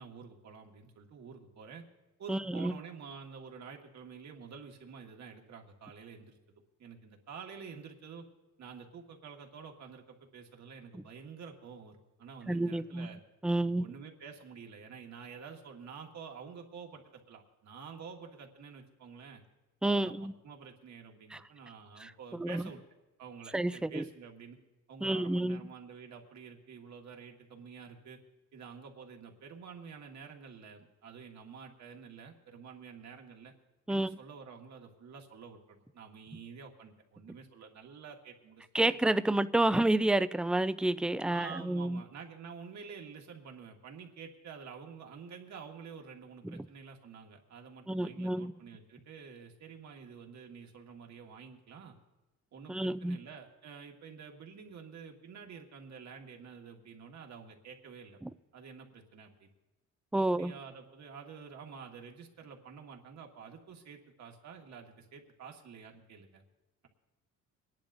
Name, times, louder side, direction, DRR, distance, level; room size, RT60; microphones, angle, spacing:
voice 1, 0.0-1.8 2.2-6.4 6.8-8.2 8.6-13.2 13.8-19.4 19.8-22.8 23.2-24.6 24.9-28.2 28.5-33.5 33.9-39.0 41.3-51.9 52.5-58.2 58.5-59.5 60.1-66.4, right 6 dB, 65° right, 1.7 m, -49 dB
voice 2, 2.3-2.7 10.9-11.0 12.5-13.1 13.4-13.9 19.8-20.3 21.3-21.4 22.0-22.7 23.5-24.0 25.0-25.7 33.9-34.2 38.7-42.0 46.4-46.7 47.9-48.5 52.7-53.2 58.2-58.3 60.1-60.5, right 1 dB, 5° right, 0.3 m, -30 dB
27.5 x 10.5 x 2.6 m
cardioid pair, 90°, 30 cm